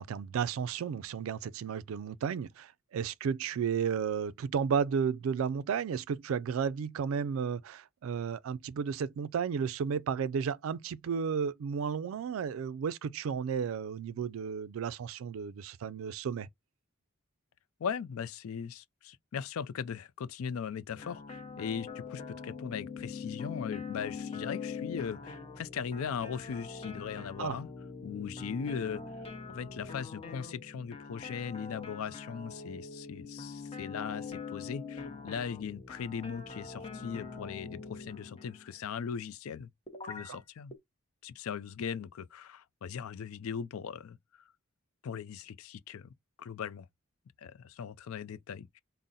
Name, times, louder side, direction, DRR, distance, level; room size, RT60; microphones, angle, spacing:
voice 1, 0.0-16.5 27.4-27.6 40.3-40.4, right 7 dB, 75° right, 0.3 m, -33 dB
voice 2, 17.8-27.7 28.0-29.0 29.5-39.7 40.0-40.7 41.2-44.2 45.0-46.1 46.4-46.9 47.4-48.8, left 7 dB, 85° left, 0.4 m, -39 dB
sound 1, 20.9-38.7 39.9-40.4 40.7-40.8, left 5 dB, 30° left, 0.7 m, -43 dB
3.7 x 2.0 x 4.0 m
head